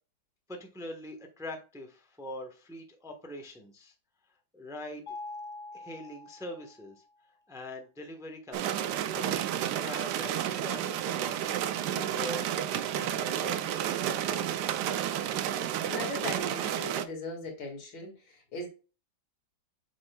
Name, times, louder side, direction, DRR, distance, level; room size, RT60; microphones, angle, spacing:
voice 1, 0.5-3.9 4.5-5.0 5.7-7.0 7.5-11.5 11.9-12.4 12.9-14.8, left 1 dB, 5° right, 4 dB, 0.7 m, -43 dB
Mallet percussion, 5.1-7.0, left 3 dB, 60° left, 1.7 m, -44 dB
sound 1, 8.5-17.0, right 10 dB, 70° right, 1.1 m, -31 dB
voice 2, 15.9-18.7, left 2 dB, 90° left, 1 dB, 2.8 m, -39 dB
7.5 x 5.8 x 2.3 m, 0.33 s
omnidirectional pair, 2.1 m